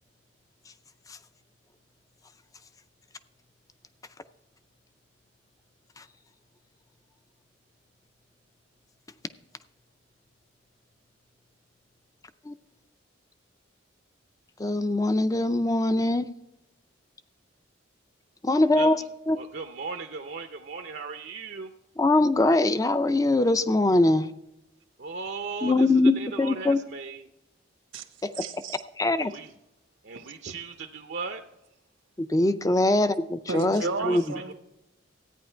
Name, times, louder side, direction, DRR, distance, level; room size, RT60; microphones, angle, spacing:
voice 1, 14.6-16.3 18.4-19.0 19.3-19.4 22.0-24.3 25.6-26.8 29.0-29.3 32.2-34.2, left 2 dB, 15° left, 0.4 m, -22 dB
voice 2, 18.7-19.1 19.3-21.7 25.0-27.3 29.1-29.5 30.0-31.5 33.8-34.2 34.5-34.6, right 4 dB, 60° right, 0.6 m, -37 dB
voice 3, 28.3-28.8 33.5-34.5, right 3 dB, 85° right, 1.1 m, -33 dB
14.0 x 9.3 x 4.4 m
head